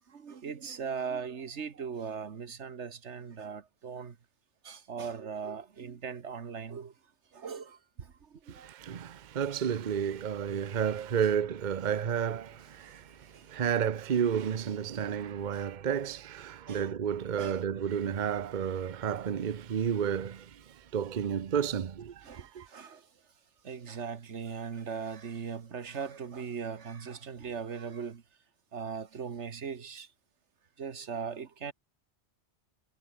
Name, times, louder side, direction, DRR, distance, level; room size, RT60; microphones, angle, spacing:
voice 1, 0.1-4.2 4.6-6.9 7.3-8.7 12.8-13.6 15.5-15.6 16.7-16.9 17.4-17.6 22.2-23.1 23.6-28.2 28.7-30.1 30.8-31.7, right 6 dB, 90° right, 1.7 m, -39 dB
voice 2, 8.5-22.7, right 8 dB, 45° right, 0.9 m, -31 dB
omnidirectional pair, 1.2 m